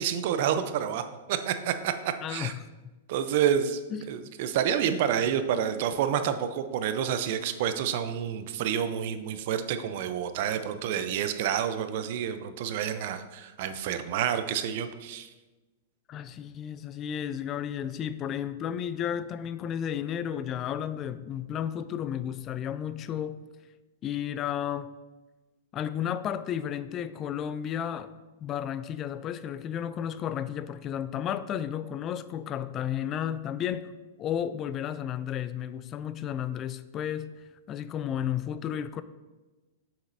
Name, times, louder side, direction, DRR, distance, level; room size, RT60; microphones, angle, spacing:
voice 1, 0.0-2.5 3.1-3.8 4.1-15.3, right 9 dB, 55° right, 10 dB, 0.6 m, -29 dB
voice 2, 2.2-2.6 3.9-4.1 16.1-23.4 24.0-24.9 25.7-28.1 28.4-33.9 34.2-39.0, left 9 dB, 30° left, 14 dB, 0.3 m, -33 dB
7.3 x 6.9 x 2.7 m, 1.2 s
hypercardioid pair, 125°, 0 cm